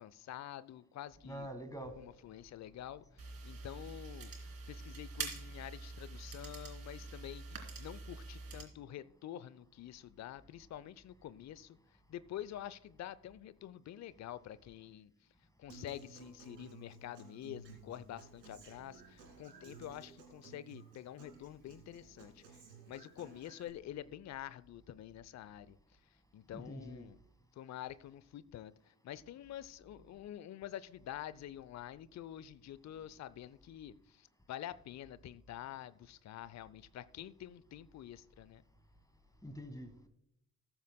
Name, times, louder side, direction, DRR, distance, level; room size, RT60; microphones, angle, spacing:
voice 1, 0.0-1.5 2.0-4.3 4.7-11.8 12.1-15.1 15.6-22.6 22.9-25.8 26.3-27.2 27.6-38.6, left 12 dB, 35° left, 0.6 m, -48 dB
voice 2, 1.2-2.0 26.5-27.0 39.4-40.1, equal, 5° left, 1.7 m, -45 dB
sound 1, 3.2-8.6, right 3 dB, 45° right, 3.2 m, -45 dB
Human voice / Acoustic guitar, 15.7-23.7, right 4 dB, 85° right, 2.2 m, -56 dB
18.5 x 8.7 x 2.2 m
figure-of-eight pair, 45°, 49 cm